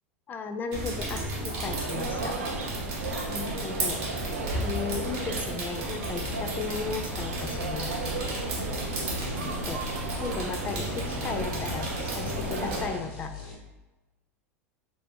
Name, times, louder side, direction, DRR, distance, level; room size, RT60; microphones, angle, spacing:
voice 1, 0.3-2.4 3.3-4.0 4.6-7.9 9.7-9.8 10.2-13.3, left 5 dB, 25° left, 7 dB, 0.4 m, -35 dB
sound 1, 0.7-12.8, right 1 dB, 55° right, 0.9 m, -34 dB
sound 2, 1.7-13.0, right 3 dB, 80° right, 0.4 m, -35 dB
sound 3, 6.2-6.7 7.1-10.4 10.6-13.5, left 6 dB, 60° left, 1.0 m, -41 dB
3.2 x 2.6 x 3.2 m, 1.1 s
figure-of-eight pair, 85°, 7 cm